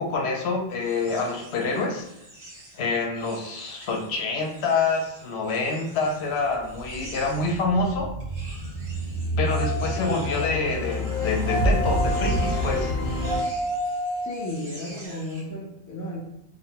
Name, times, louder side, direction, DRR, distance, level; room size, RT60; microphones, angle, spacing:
voice 1, 0.0-2.0 2.7-8.1 9.4-12.9, left 3 dB, 85° left, 2 dB, 0.9 m, -26 dB
sound 1, 0.7-7.7 8.2-15.5, right 1 dB, 55° right, 1.1 m, -47 dB
sound 2, 6.3-13.4, equal, 60° left, 1.0 m, -28 dB
sound 3, 9.5-10.5 11.4-12.6 13.2-14.5 15.0-15.1, equal, 85° right, 1.2 m, -30 dB
voice 2, 14.2-16.2, left 1 dB, 25° left, -2 dB, 0.4 m, -34 dB
2.5 x 2.2 x 2.8 m, 0.82 s
omnidirectional pair, 1.1 m